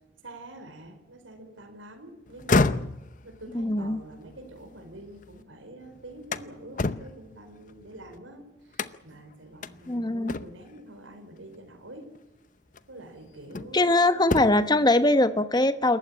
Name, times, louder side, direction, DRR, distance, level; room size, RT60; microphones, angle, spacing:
voice 1, 0.2-2.9 3.2-12.2 12.9-14.3, right 1 dB, 85° right, 5 dB, 4.6 m, -46 dB
sound 1, 2.3-5.4 5.8-8.2 8.7-9.2 9.6-9.7 10.3-10.8 12.0-12.2 12.7-13.9 14.2-14.8, left 3 dB, 40° left, 0.7 m, -30 dB
voice 2, 3.5-4.0 9.9-10.3 13.7-16.0, left 2 dB, 20° left, 11 dB, 1.1 m, -22 dB
28.0 x 15.0 x 8.8 m, 0.93 s
head